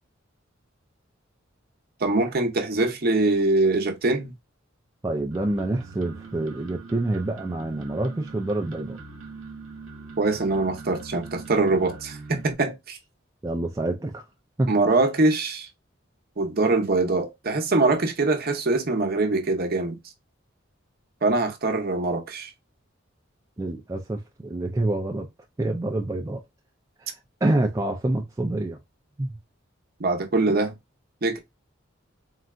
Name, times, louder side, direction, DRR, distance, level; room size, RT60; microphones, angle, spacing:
voice 1, 2.0-4.3 10.2-13.0 14.7-15.7 16.4-20.0 21.2-22.5 30.0-30.7 31.2-31.4, right 2 dB, 50° right, 0.7 m, -23 dB
voice 2, 5.0-9.0 13.4-14.2 14.6-14.7 23.6-25.3 25.6-26.4 27.0-28.8 29.2-29.3, right 2 dB, 15° right, 0.3 m, -27 dB
sound 1, 5.3-12.5, right 4 dB, 80° right, 0.7 m, -42 dB
3.8 x 2.2 x 2.3 m
head